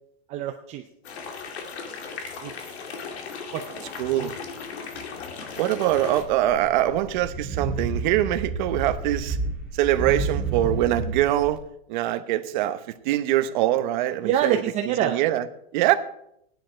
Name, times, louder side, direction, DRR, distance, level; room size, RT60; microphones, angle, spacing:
voice 1, 0.3-0.9 2.4-2.5 3.5-3.8 4.2-4.3 14.2-15.2, right 10 dB, 20° right, 5 dB, 0.6 m, -26 dB
sound 1, 1.0-6.2, left 5 dB, 85° left, 2.4 m, -37 dB
voice 2, 4.0-4.4 5.6-9.4 9.7-11.6 11.9-14.6 15.0-15.5 15.7-15.9, right 13 dB, 45° right, 10 dB, 1.0 m, -23 dB
sound 2, 6.2-11.6, right 3 dB, 5° right, 1.9 m, -30 dB
16.5 x 10.5 x 4.4 m, 0.76 s
supercardioid pair, 160°, 31 cm